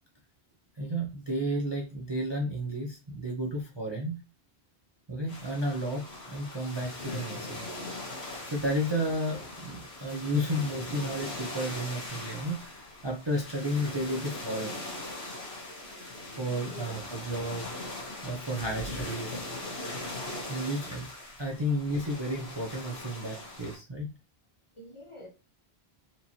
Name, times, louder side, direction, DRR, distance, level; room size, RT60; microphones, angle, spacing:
voice 1, 0.8-4.2 5.1-7.7 8.5-14.8 16.4-17.7 18.2-19.4 20.4-21.1 21.4-24.1, equal, 30° right, 0.6 m, -32 dB
sound 1, 5.3-23.8, left 2 dB, 70° left, 1.5 m, -40 dB
voice 2, 16.5-17.0 24.8-25.3, equal, 30° left, 0.8 m, -46 dB
4.4 x 2.9 x 2.8 m
omnidirectional pair, 1.1 m